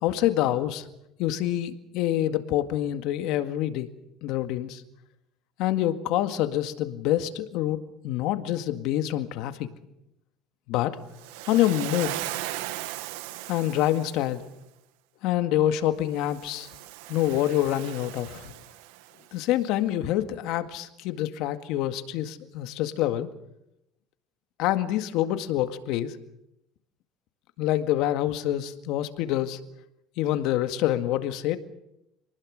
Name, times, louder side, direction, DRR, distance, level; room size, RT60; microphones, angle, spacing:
voice 1, 0.0-0.9 1.2-3.9 4.2-4.8 5.6-9.7 10.7-11.0 11.5-12.2 13.5-14.4 15.2-16.7 17.1-18.5 19.3-23.3 24.6-26.2 27.6-29.6 30.2-31.6, left 13 dB, 70° left, 8 dB, 1.9 m, -26 dB
Waves surf, 11.2-14.4 16.2-19.2, right 16 dB, 90° right, 1.3 m, -37 dB
28.0 x 19.5 x 6.5 m, 0.84 s
cardioid pair, 120°, 0 cm